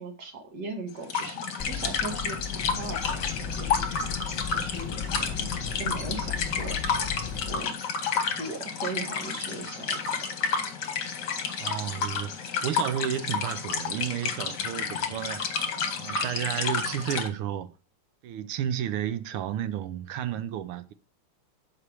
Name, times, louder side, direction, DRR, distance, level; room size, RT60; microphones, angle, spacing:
voice 1, 0.0-3.9 4.4-5.5 5.8-7.0 7.3-7.8 8.4-10.2, right 3 dB, 50° right, 1.8 m, -39 dB
sound 1, 1.0-17.3, left 6 dB, 55° left, 1.5 m, -30 dB
sound 2, 1.6-7.6, left 6 dB, 20° left, 1.5 m, -36 dB
voice 2, 11.6-12.3 12.6-15.4 15.9-17.7 18.2-20.9, right 10 dB, 80° right, 1.5 m, -32 dB
7.0 x 5.0 x 4.7 m
omnidirectional pair, 2.4 m